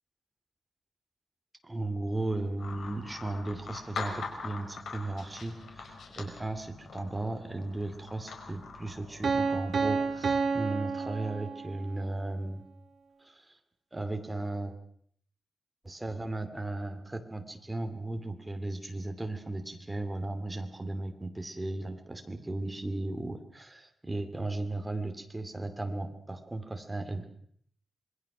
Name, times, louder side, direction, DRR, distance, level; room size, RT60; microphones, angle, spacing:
voice 1, 1.6-12.6 13.2-13.4 13.9-14.7 15.8-27.3, right 2 dB, 15° right, 6 dB, 2.5 m, -36 dB
sound 1, 2.6-10.5, left 4 dB, 90° left, 5.1 m, -43 dB
Piano, 9.2-12.0, right 4 dB, 45° right, 1.9 m, -30 dB
26.5 x 21.5 x 6.1 m, 0.62 s
wide cardioid pair, 150°, 0 cm